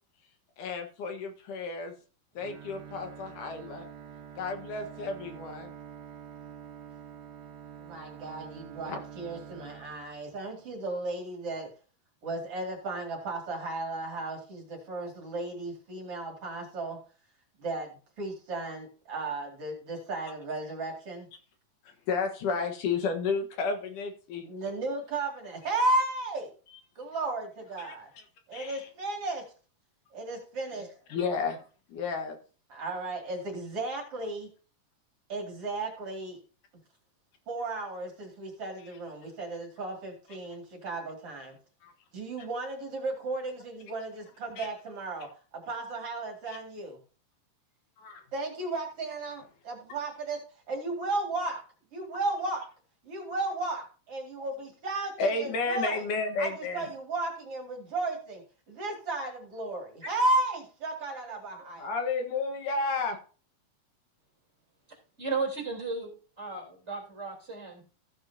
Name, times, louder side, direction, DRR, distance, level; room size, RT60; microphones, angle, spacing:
voice 1, 0.6-1.9 2.3-3.9 4.4-5.7 8.9-9.0 21.8-24.5 26.7-26.8 27.8-28.3 28.5-28.9 31.1-32.4 38.8-39.0 41.8-41.9 44.6-44.7 46.5-46.6 48.0-48.2 55.2-56.9 61.8-63.2, left 4 dB, 70° left, 5 dB, 2.9 m, -32 dB
Bowed string instrument, 2.4-10.6, right 8 dB, 65° right, 1.4 m, -46 dB
voice 2, 7.8-11.7 12.2-17.0 17.6-17.9 18.2-21.3 24.5-26.5 27.0-28.1 28.5-29.4 30.1-30.9 32.7-34.5 35.3-36.4 37.5-41.6 42.1-45.3 45.7-47.0 48.3-50.4 50.7-51.6 51.9-52.6 53.0-56.0 56.4-58.4 58.7-61.9, right 2 dB, 45° right, 2 dB, 2.9 m, -34 dB
voice 3, 65.2-67.8, right 4 dB, 20° right, 0 dB, 3.4 m, -35 dB
15.0 x 8.1 x 2.7 m, 0.38 s
omnidirectional pair, 3.8 m